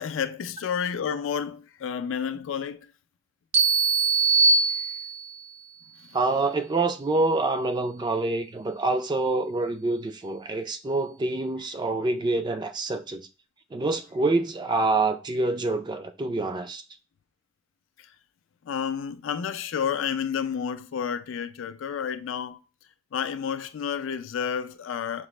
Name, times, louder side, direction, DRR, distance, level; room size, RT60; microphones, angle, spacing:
voice 1, 0.0-2.8 18.7-22.6 23.1-25.3, left 7 dB, 75° left, 0.4 m, -30 dB
sound 1, 3.5-5.4, right 4 dB, 60° right, 0.6 m, -21 dB
voice 2, 6.1-13.3 13.7-16.8, right 2 dB, 25° right, 0.3 m, -26 dB
5.8 x 2.0 x 3.1 m
head